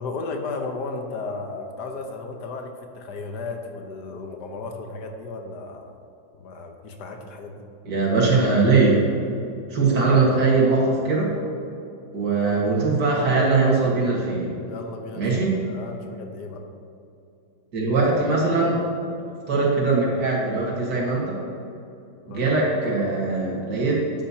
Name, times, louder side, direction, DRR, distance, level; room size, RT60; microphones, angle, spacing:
voice 1, 0.0-5.9 6.3-7.6 9.8-10.0 12.4-12.7 14.7-16.6 22.3-22.7, left 3 dB, 60° left, 4 dB, 1.4 m, -35 dB
voice 2, 7.8-9.0 9.7-11.4 12.1-14.5 15.2-15.6 17.7-18.8 19.5-21.4 22.3-24.0, right 3 dB, 55° right, -3 dB, 2.2 m, -21 dB
12.5 x 9.0 x 2.8 m, 2.7 s
omnidirectional pair, 2.2 m